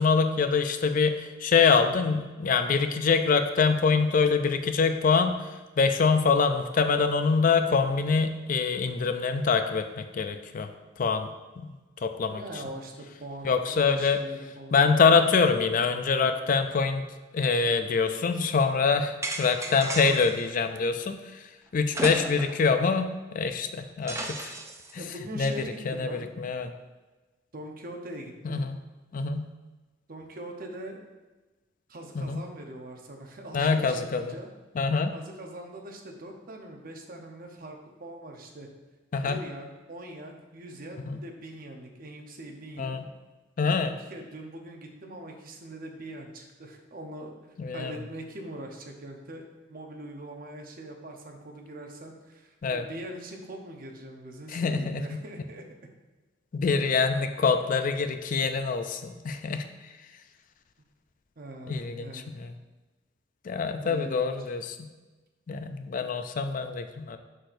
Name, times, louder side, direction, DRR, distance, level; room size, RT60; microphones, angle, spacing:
voice 1, 0.0-5.4 5.8-10.7 11.0-11.3 11.6-11.7 12.0-12.4 13.4-14.2 14.7-17.1 17.3-21.2 21.7-24.5 24.9-25.0 25.4-25.5 25.9-26.7 28.4-28.8 29.1-29.5 32.2-32.4 33.5-34.4 34.8-35.1 39.1-39.4 41.1-41.2 42.8-43.0 43.6-43.9 47.6-48.0 52.6-52.8 54.5-55.2 56.5-59.6 61.7-62.5 63.5-64.9 65.5-67.2, left 5 dB, 45° left, 8 dB, 0.4 m, -25 dB
voice 2, 12.3-14.8 25.0-26.3 27.5-28.6 30.1-31.0 31.9-34.5 35.1-38.7 39.2-43.0 43.6-47.3 47.7-49.4 49.7-55.6 59.5-59.6 61.4-62.3 63.8-64.3, right 1 dB, 50° right, 3 dB, 0.8 m, -42 dB
sound 1, 19.2-20.4 21.9-22.7 23.0-23.1 24.1-24.9, right 2 dB, 15° right, 0.5 m, -34 dB
6.3 x 6.1 x 2.6 m, 1.2 s
head